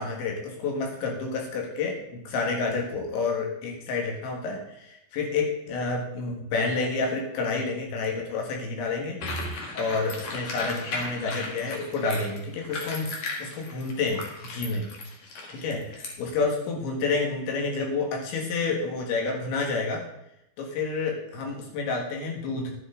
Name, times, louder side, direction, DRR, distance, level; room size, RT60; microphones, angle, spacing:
voice 1, 0.0-9.2 9.7-13.1 13.4-14.9 15.5-20.0 20.6-22.7, left 4 dB, 70° left, 0 dB, 3.9 m, -29 dB
sound 1, 9.2-16.1, left 2 dB, 50° left, 2.3 m, -35 dB
11.5 x 10.0 x 3.8 m, 0.83 s
omnidirectional pair, 5.5 m